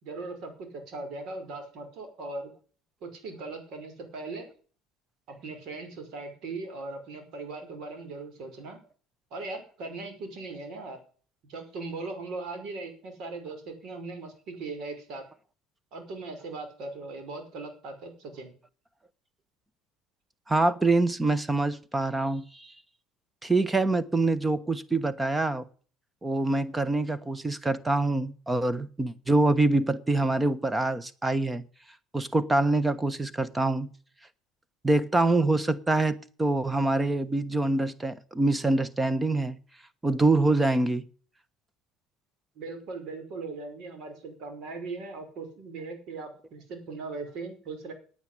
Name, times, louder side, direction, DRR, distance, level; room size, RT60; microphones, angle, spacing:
voice 1, 0.0-2.5 3.0-4.5 5.3-8.8 9.3-11.0 11.5-15.2 15.9-18.5 42.6-47.9, right 3 dB, 60° right, 5.2 m, -39 dB
voice 2, 20.5-22.7 23.4-25.6 26.2-31.6 32.1-33.9 34.8-39.6 40.0-41.1, right 2 dB, 15° right, 1.2 m, -25 dB
9.5 x 9.4 x 8.6 m
supercardioid pair, 110°, 0 cm